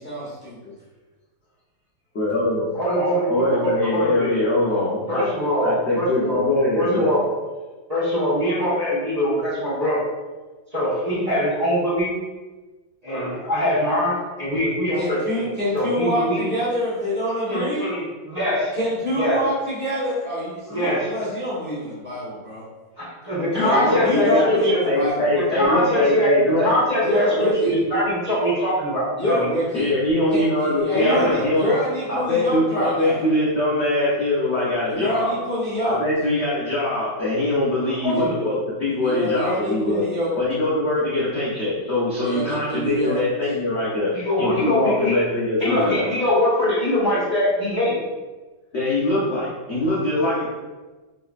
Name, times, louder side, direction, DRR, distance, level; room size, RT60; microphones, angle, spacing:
voice 1, 0.0-0.5 15.0-17.8 18.8-22.6 23.5-25.3 27.0-27.7 29.2-29.9 30.3-33.2 34.9-36.0 38.1-38.2 39.0-40.3 42.2-43.3, equal, 10° left, -10 dB, 0.7 m, -26 dB
voice 2, 2.1-2.7 3.3-5.2 5.6-7.1 23.6-24.5 24.8-26.7 29.7-31.7 32.1-35.3 35.8-40.0 40.4-46.1 48.7-50.5, left 1 dB, 70° left, -8 dB, 0.6 m, -22 dB
voice 3, 2.7-4.4 5.1-5.7 6.0-6.4 6.7-7.2 7.9-10.0 10.7-12.1 13.0-15.5 15.7-16.4 17.5-18.7 19.1-19.4 20.7-21.1 23.0-24.8 25.5-26.3 26.6-29.5 30.9-31.4 38.0-38.5 43.8-45.2 45.6-48.0, equal, 25° right, -9 dB, 1.1 m, -22 dB
3.7 x 3.0 x 2.4 m, 1.2 s
omnidirectional pair, 2.2 m